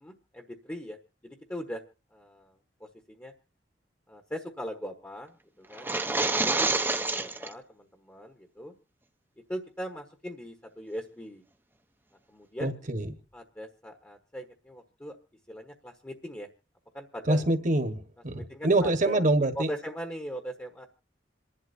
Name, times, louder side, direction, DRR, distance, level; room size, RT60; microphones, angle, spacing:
voice 1, 0.0-1.0 1.2-1.8 2.1-2.5 2.8-3.3 4.1-5.9 6.2-8.7 9.5-11.4 12.3-12.7 13.3-15.2 15.5-16.5 16.9-17.4 18.3-19.2 19.5-20.9, equal, 15° left, 4 dB, 1.2 m, -40 dB
sound 1, 5.7-7.5, right 3 dB, 10° right, 0.8 m, -27 dB
voice 2, 12.6-13.1 17.3-19.7, right 2 dB, 45° right, 8 dB, 1.4 m, -25 dB
27.5 x 11.5 x 2.7 m, 0.33 s
head